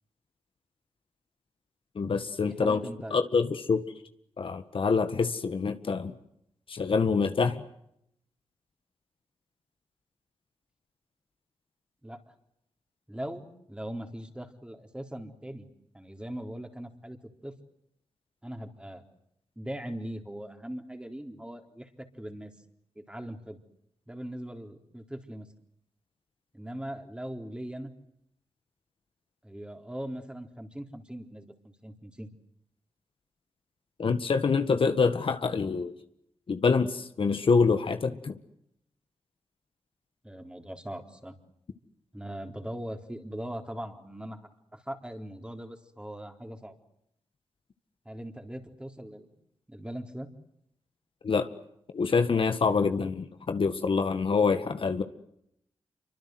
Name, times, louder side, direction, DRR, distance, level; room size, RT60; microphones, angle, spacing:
voice 1, 2.0-2.8 3.1-3.8 4.4-6.1 6.7-7.6 34.0-35.9 36.5-38.4 51.2-51.5 51.9-55.0, left 5 dB, 60° left, 8 dB, 1.8 m, -26 dB
voice 2, 2.5-3.3 12.0-12.2 13.1-15.7 15.9-17.2 17.4-17.5 18.4-19.0 19.6-22.5 23.0-23.6 24.1-25.5 26.5-27.9 29.4-31.5 31.8-32.3 40.2-41.3 42.1-44.4 44.7-46.8 48.1-49.3 49.7-50.3, right 1 dB, 10° right, 5 dB, 4.0 m, -40 dB
27.0 x 24.5 x 8.0 m, 0.75 s
cardioid pair, 65°, 10 cm